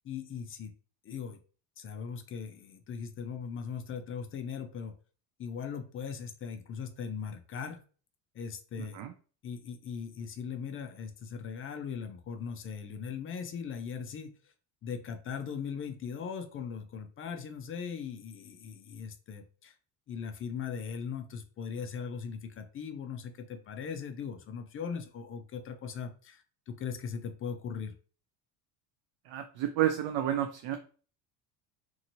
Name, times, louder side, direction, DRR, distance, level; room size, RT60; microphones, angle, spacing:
voice 1, 0.0-0.7 1.0-1.4 1.8-4.9 5.4-7.8 8.3-9.0 9.4-14.4 14.8-19.7 20.1-27.9, left 6 dB, 30° left, 6 dB, 0.4 m, -39 dB
voice 2, 29.3-30.8, right 11 dB, 60° right, 6 dB, 0.5 m, -30 dB
2.8 x 2.6 x 2.7 m, 0.39 s
cardioid pair, 120°, 44 cm